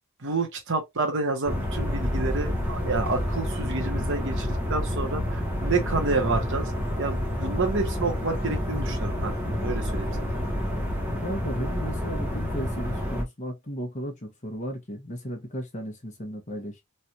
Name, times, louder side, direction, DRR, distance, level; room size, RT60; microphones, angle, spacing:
voice 1, 0.2-6.7 7.0-10.1, right 3 dB, 60° right, 1.0 m, -29 dB
sound 1, 1.5-13.2, equal, 10° right, 1.0 m, -29 dB
voice 2, 11.2-16.8, equal, 35° left, 1.0 m, -35 dB
3.2 x 2.5 x 2.7 m
head